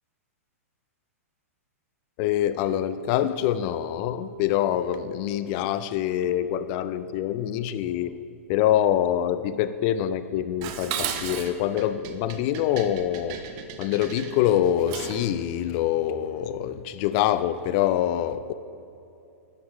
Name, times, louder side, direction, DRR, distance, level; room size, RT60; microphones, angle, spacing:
voice 1, 2.2-8.2 8.5-13.4 13.8-18.5, left 11 dB, 40° left, 0.4 m, -25 dB
Dishes pots and pans, 10.6-15.3, right 8 dB, 40° right, 0.8 m, -35 dB
11.5 x 7.6 x 3.2 m
hypercardioid pair, 120°, 8 cm